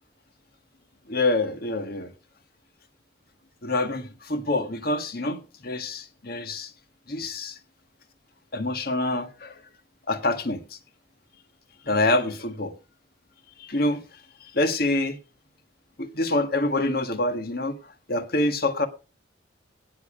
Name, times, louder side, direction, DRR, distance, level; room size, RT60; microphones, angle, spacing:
voice 1, 1.1-2.1 3.6-6.7 7.1-7.6 8.5-9.6 10.1-10.8 11.8-12.7 13.6-14.0 14.4-15.2 16.0-18.9, left 2 dB, 50° left, 1.6 m, -26 dB
17.5 x 7.0 x 5.0 m
head